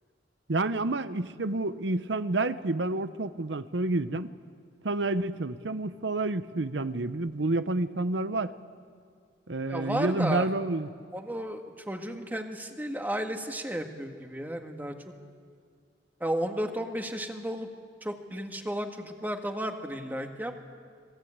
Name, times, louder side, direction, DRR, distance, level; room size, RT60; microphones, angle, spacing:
voice 1, 0.5-4.3 4.8-8.5 9.5-10.9, right 2 dB, 70° right, 13 dB, 0.9 m, -29 dB
voice 2, 9.7-10.5 11.1-14.9 16.2-17.7 18.0-20.5, right 1 dB, 10° right, 4 dB, 1.8 m, -33 dB
26.5 x 20.5 x 8.8 m, 2.2 s
head